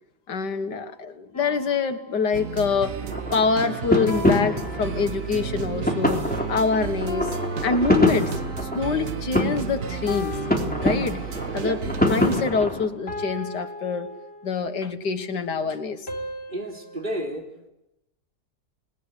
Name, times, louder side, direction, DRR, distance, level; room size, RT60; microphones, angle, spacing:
voice 1, 0.3-2.9 3.3-7.3 7.6-8.3 8.6-10.4 10.8-11.2 11.5-14.1 14.4-16.0, left 5 dB, 85° left, 8 dB, 2.2 m, -25 dB
sound 1, 1.3-3.0 4.1-5.6 7.1-8.7 10.1-11.6 13.1-14.8 16.1-17.1, left 3 dB, 35° left, 4.0 m, -37 dB
sound 2, 2.3-12.5, right 7 dB, 55° right, 1.5 m, -32 dB
sound 3, 3.0-12.9, left 1 dB, 5° left, 3.4 m, -26 dB
voice 2, 11.5-11.9 16.5-17.5, right 1 dB, 30° right, 2 dB, 3.8 m, -31 dB
29.0 x 20.0 x 8.3 m, 0.91 s
omnidirectional pair, 1.8 m